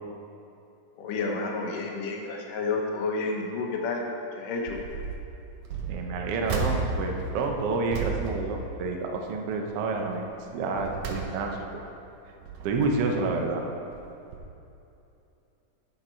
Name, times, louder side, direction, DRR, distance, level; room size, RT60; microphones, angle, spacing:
voice 1, 1.0-4.0 4.4-4.8, left 3 dB, 75° left, 1 dB, 2.6 m, -30 dB
sound 1, 4.6-5.2 5.6-9.3 9.7-10.0 10.5-11.8 12.3-13.2 13.9-14.1 14.3-14.4, right 4 dB, 70° right, 1.7 m, -34 dB
voice 2, 5.8-10.3 10.5-11.6 12.6-13.6, right 3 dB, 85° right, 2 dB, 1.3 m, -29 dB
9.1 x 8.1 x 4.4 m, 2.8 s
omnidirectional pair, 3.9 m